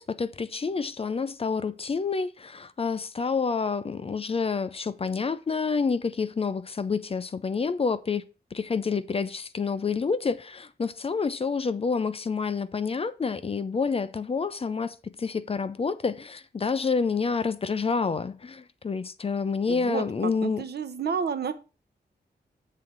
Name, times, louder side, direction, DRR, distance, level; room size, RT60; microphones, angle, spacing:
voice 1, 0.0-8.2 8.5-20.6, left 5 dB, 35° left, 0.5 m, -28 dB
voice 2, 19.7-21.5, right 6 dB, 70° right, 0.8 m, -31 dB
7.6 x 3.8 x 6.0 m
wide cardioid pair, 150°, 18 cm